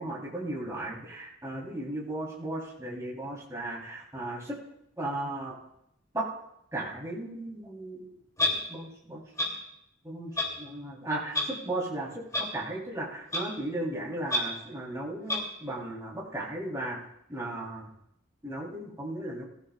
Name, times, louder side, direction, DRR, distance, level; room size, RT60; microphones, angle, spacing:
voice 1, 0.0-4.6 5.0-5.5 6.1-6.3 6.7-9.2 10.0-17.0 17.3-17.9 18.4-19.5, right 1 dB, 15° right, -5 dB, 4.0 m, -36 dB
Clock, 8.4-8.5 9.4-9.5 10.4-10.5 11.3-11.4 12.3-12.4 13.3-13.4 14.3-14.4 15.3-15.4, left 2 dB, 15° left, 3.2 m, -26 dB
23.0 x 15.5 x 2.5 m, 0.75 s
head